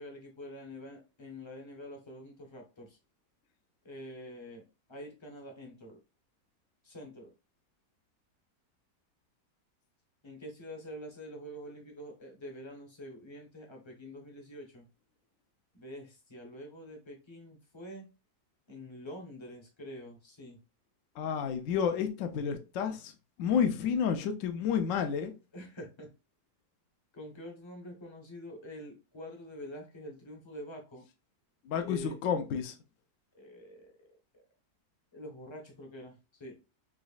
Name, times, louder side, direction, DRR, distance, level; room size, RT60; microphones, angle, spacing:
voice 1, 0.0-3.0 3.8-4.6 4.9-6.0 6.8-7.3 10.2-14.9 15.7-18.1 18.7-20.6 25.5-26.1 27.1-31.0 31.8-32.2 33.3-33.9 34.3-34.4 35.1-36.6, equal, 30° left, 0.5 m, -46 dB
voice 2, 21.2-23.1 23.4-25.3 31.7-32.7, left 7 dB, 70° left, 0.8 m, -30 dB
4.0 x 3.0 x 2.4 m
omnidirectional pair, 1.8 m